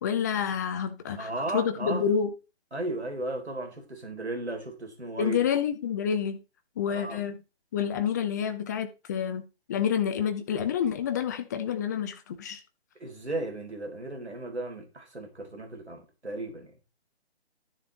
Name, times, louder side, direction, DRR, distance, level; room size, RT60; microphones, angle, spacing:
voice 1, 0.0-2.3 5.2-6.4 6.8-7.4 7.7-12.6, left 8 dB, 15° left, 0.8 m, -28 dB
voice 2, 1.2-2.1 2.7-5.4 6.9-7.2 13.0-16.7, right 2 dB, 80° right, 3.9 m, -35 dB
12.5 x 6.9 x 3.9 m
figure-of-eight pair, 145°, 33 cm